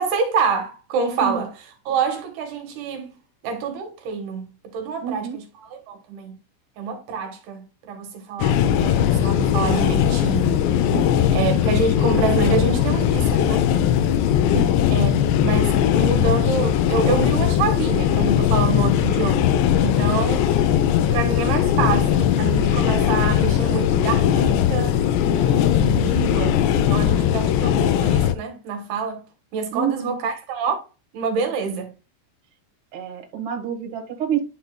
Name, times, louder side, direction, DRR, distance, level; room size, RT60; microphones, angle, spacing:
voice 1, 0.0-3.1 3.4-4.4 4.7-6.4 6.8-10.6 11.3-13.7 14.9-20.5 21.1-29.2 29.5-30.8 31.1-31.9, right 5 dB, 70° right, 3.3 m, -27 dB
voice 2, 5.0-5.4 10.9-11.4 14.5-14.7 15.1-15.2 29.7-30.2 32.9-34.4, right 8 dB, 45° right, 1.8 m, -28 dB
sound 1, 8.4-28.3, left 10 dB, 85° left, 2.9 m, -19 dB
11.0 x 5.4 x 2.4 m
omnidirectional pair, 4.9 m